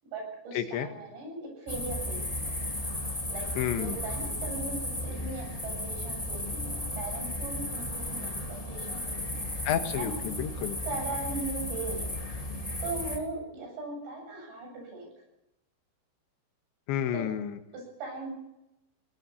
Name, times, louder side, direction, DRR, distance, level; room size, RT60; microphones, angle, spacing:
voice 1, 0.0-2.5 3.3-3.5 3.8-9.5 9.9-10.1 10.9-12.1 12.8-15.1 17.1-17.2 17.7-18.3, right 3 dB, 75° right, 2 dB, 10.5 m, -39 dB
voice 2, 0.6-0.9 3.6-4.0 9.7-10.8 16.9-17.6, left 10 dB, 85° left, 7 dB, 3.7 m, -30 dB
sound 1, 1.7-13.2, left 1 dB, 15° left, 1.5 m, -34 dB
23.0 x 18.5 x 7.1 m, 0.90 s
omnidirectional pair, 5.1 m